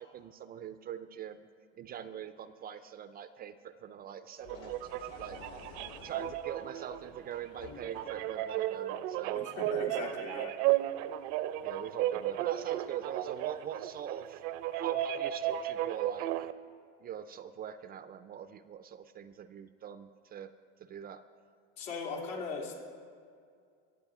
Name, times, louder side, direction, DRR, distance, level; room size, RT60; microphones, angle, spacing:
voice 1, 0.0-9.4 10.0-10.1 11.6-14.4 14.7-16.5 17.0-20.5 20.8-21.2, right 9 dB, 25° right, 12 dB, 0.4 m, -44 dB
sound 1, 4.4-8.4, left 6 dB, 60° left, 1.3 m, -52 dB
sound 2, 4.4-16.5, right 13 dB, 75° right, 0.6 m, -34 dB
voice 2, 9.3-10.5 21.8-22.7, left 5 dB, 80° left, -1 dB, 3.1 m, -39 dB
23.5 x 7.8 x 4.8 m, 2.2 s
supercardioid pair, 125°, 35 cm